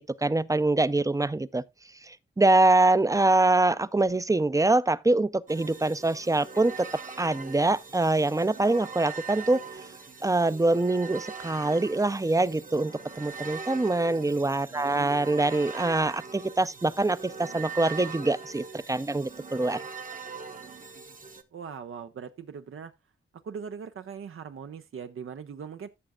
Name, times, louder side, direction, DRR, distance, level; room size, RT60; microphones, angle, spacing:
voice 1, 0.0-1.6 2.0-6.9 7.2-9.6 10.2-19.8, right 2 dB, 15° right, 0.4 m, -24 dB
sound 1, 5.5-21.4, right 5 dB, 40° right, 0.9 m, -42 dB
voice 2, 14.7-15.1 21.5-22.9 23.4-25.9, right 6 dB, 85° right, 0.6 m, -40 dB
14.0 x 6.4 x 2.3 m
wide cardioid pair, 90°, 21 cm